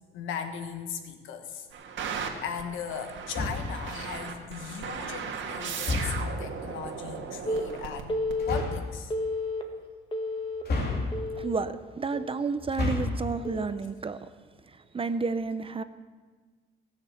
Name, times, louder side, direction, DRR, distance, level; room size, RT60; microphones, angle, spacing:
voice 1, 0.1-1.7 2.0-8.2 8.5-9.1, left 7 dB, 90° left, 7 dB, 1.4 m, -38 dB
sound 1, 1.7-8.6, right 6 dB, 70° right, 1.7 m, -37 dB
sound 2, 3.3-3.8 5.8-6.4 8.4-8.9 10.6-11.4 12.6-13.3, left 3 dB, 55° left, 2.6 m, -30 dB
Telephone, 7.5-7.6 8.1-8.6 9.1-9.6 10.1-10.6 11.1-11.6 12.1-12.4 13.4-13.6, left 2 dB, 25° left, 1.8 m, -31 dB
voice 2, 11.4-14.2 14.9-15.8, right 4 dB, 30° right, 12 dB, 0.7 m, -31 dB
18.0 x 6.7 x 7.2 m, 1.4 s
cardioid pair, 90°, 20 cm